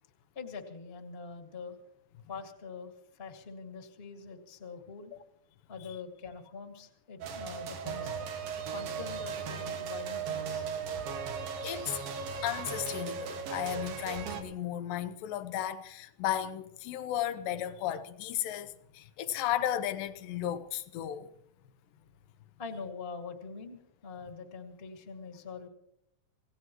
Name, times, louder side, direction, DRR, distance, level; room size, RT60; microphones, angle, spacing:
voice 1, 0.3-1.8 2.3-5.1 5.7-10.6 22.6-25.7, left 5 dB, 25° left, 1.4 m, -44 dB
sound 1, 7.2-14.4, right 6 dB, 90° right, 3.5 m, -37 dB
voice 2, 11.6-12.0 12.4-21.3, left 11 dB, 80° left, 2.6 m, -34 dB
27.0 x 17.0 x 3.0 m
omnidirectional pair, 4.1 m